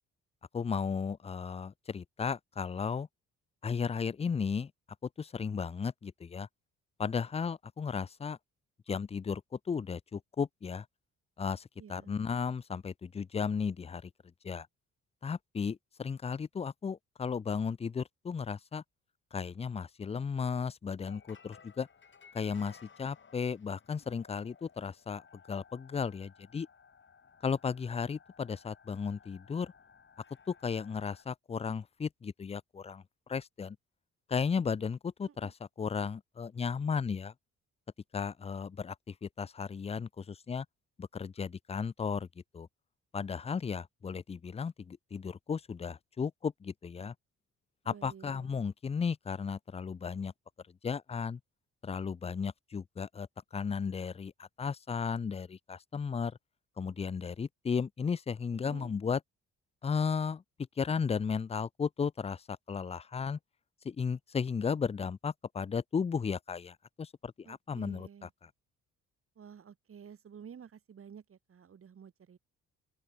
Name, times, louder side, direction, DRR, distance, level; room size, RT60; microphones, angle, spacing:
voice 1, 0.5-3.1 3.6-4.7 5.0-6.5 7.0-8.4 8.9-10.9 11.4-14.1 14.4-14.7 15.2-18.8 19.3-21.9 22.3-25.2 25.5-26.7 27.4-29.7 30.5-33.0 33.3-33.8 34.3-37.3 38.1-40.7 41.0-42.3 42.5-42.7 43.1-47.1 47.9-50.3 50.8-51.4 51.8-56.4 56.8-59.2 59.8-60.4 60.8-63.4 63.8-68.5, left 6 dB, 20° left, 0.4 m, -35 dB
voice 2, 11.8-12.2 35.3-35.5 47.8-48.5 58.6-58.9 67.4-68.3 69.4-72.4, right 7 dB, 45° right, 2.7 m, -51 dB
sound 1, 21.0-31.2, left 6 dB, 40° left, 3.9 m, -59 dB
open air
cardioid pair, 90°, 30 cm